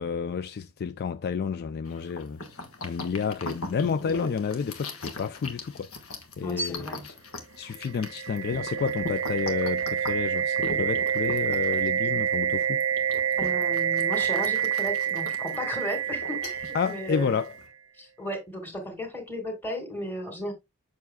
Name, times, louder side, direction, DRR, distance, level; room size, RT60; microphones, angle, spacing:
voice 1, 0.0-5.9 6.4-7.0 7.6-12.8 16.7-17.5, left 6 dB, 50° left, 0.3 m, -30 dB
sound 1, 1.8-17.7, left 2 dB, 80° left, 1.4 m, -41 dB
voice 2, 6.4-7.0 13.4-17.4 18.0-20.5, equal, 10° left, 2.2 m, -34 dB
sound 2, 7.8-17.7, right 8 dB, 70° right, 0.6 m, -28 dB
7.1 x 6.4 x 2.2 m
head